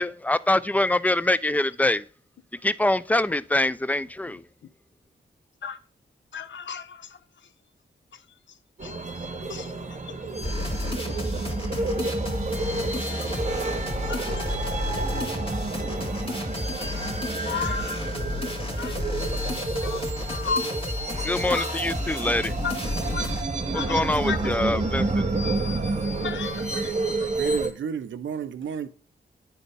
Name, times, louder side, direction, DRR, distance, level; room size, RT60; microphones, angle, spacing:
voice 1, 0.0-2.0 2.6-4.4 21.1-22.5 23.7-25.2, left 1 dB, 10° left, 0.3 m, -24 dB
voice 2, 6.3-7.0 9.5-9.7 14.1-14.6 16.8-17.2 17.5-18.0 18.8-18.9 19.8-20.0 20.3-20.6 21.5-21.7 22.6-22.7 23.1-23.3 23.7-24.4 26.2-26.9, left 6 dB, 75° left, 0.6 m, -33 dB
sound 1, 8.8-27.7, right 2 dB, 40° right, 0.9 m, -29 dB
sound 2, 10.4-23.4, left 1 dB, 30° left, 1.7 m, -32 dB
voice 3, 27.4-28.9, right 7 dB, 80° right, 0.5 m, -32 dB
9.6 x 4.3 x 3.3 m
cardioid pair, 55°, 19 cm